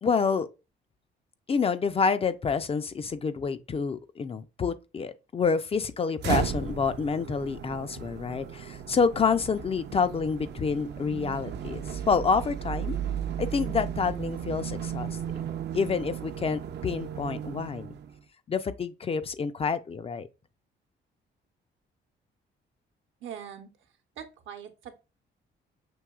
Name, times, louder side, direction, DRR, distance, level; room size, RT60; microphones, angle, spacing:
voice 1, 0.0-0.5 1.5-13.0 13.4-15.2 15.7-17.9 18.5-20.3, left 5 dB, 30° left, 0.4 m, -28 dB
sound 1, 6.2-18.2, right 8 dB, 60° right, 0.5 m, -35 dB
voice 2, 23.2-25.0, right 9 dB, 75° right, 0.8 m, -43 dB
6.1 x 2.7 x 2.3 m
cardioid pair, 90°, 20 cm